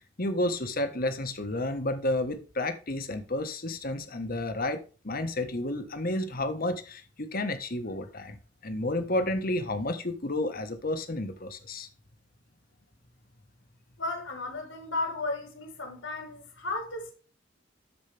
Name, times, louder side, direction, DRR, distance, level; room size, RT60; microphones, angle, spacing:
voice 1, 0.2-11.9, left 1 dB, 50° left, 1.4 m, -31 dB
voice 2, 14.0-17.1, left 2 dB, 90° left, 4.3 m, -34 dB
12.5 x 5.0 x 3.4 m
head